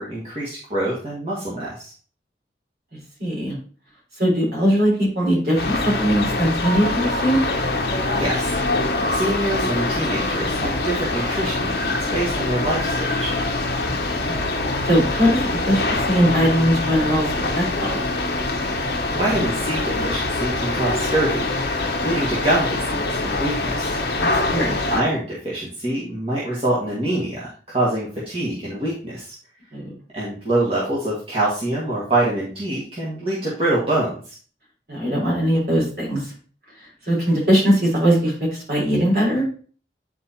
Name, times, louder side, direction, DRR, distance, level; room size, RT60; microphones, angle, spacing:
voice 1, 0.0-1.9 8.1-8.5 8.8-13.3 19.1-24.0 24.9-29.3 30.1-34.3, right 1 dB, 35° right, -7 dB, 1.7 m, -25 dB
voice 2, 3.2-3.5 4.2-7.4 13.9-14.2 14.9-18.0 24.2-24.8 29.7-29.9 34.9-36.3 36.8-39.4, equal, 55° right, -3 dB, 3.7 m, -20 dB
sound 1, 5.6-25.0, left 2 dB, 65° left, 0.9 m, -24 dB
9.3 x 4.4 x 2.8 m, 0.40 s
head